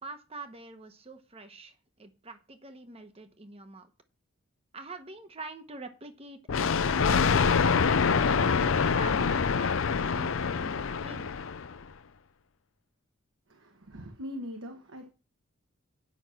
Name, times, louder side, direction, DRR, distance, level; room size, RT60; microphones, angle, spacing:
voice 1, 0.0-3.9 4.7-6.7 7.0-7.7 8.2-9.8 10.0-11.3, right 3 dB, 30° right, 1.0 m, -45 dB
Thunder, 6.5-11.8, left 5 dB, 70° left, 0.5 m, -25 dB
voice 2, 13.5-15.1, left 1 dB, 70° right, 1.2 m, -41 dB
9.4 x 5.9 x 5.8 m
head